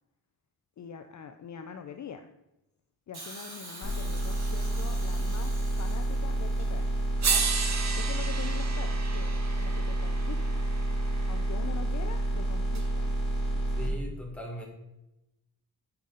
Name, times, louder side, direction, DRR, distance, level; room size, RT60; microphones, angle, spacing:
voice 1, 0.8-2.3 3.1-6.9 7.3-7.5 7.9-10.7 11.3-13.1, left 7 dB, 50° left, 7 dB, 0.5 m, -44 dB
Hiss, 3.1-7.3 8.3-8.4, right 2 dB, 85° right, 2.8 m, -47 dB
sound 1, 3.8-13.9, right 1 dB, 70° left, 2.6 m, -29 dB
sound 2, 6.6-6.7 7.2-11.4 12.7-12.8, right 5 dB, 45° right, 0.8 m, -33 dB
voice 2, 13.8-14.6, left 1 dB, 5° left, -1 dB, 1.6 m, -38 dB
8.6 x 5.6 x 3.8 m, 0.91 s
wide cardioid pair, 165°, 38 cm